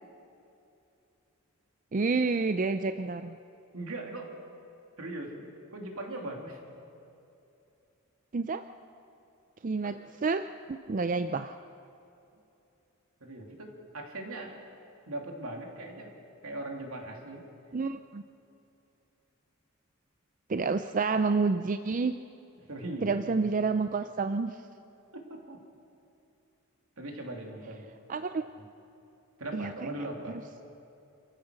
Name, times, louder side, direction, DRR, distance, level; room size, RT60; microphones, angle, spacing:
voice 1, 1.9-3.4 8.3-8.6 9.6-11.6 17.7-18.2 20.5-22.2 23.0-24.6 28.1-28.5 29.5-29.9, right 4 dB, 35° right, 10 dB, 0.4 m, -29 dB
voice 2, 3.7-4.4 5.0-6.6 9.8-9.9 13.2-14.6 15.1-16.1 16.4-17.5 22.6-23.5 25.1-25.6 27.0-27.8 28.6-28.7 29.4-30.4, right 1 dB, 75° right, 1 dB, 3.0 m, -40 dB
27.5 x 15.0 x 6.5 m, 2.8 s
head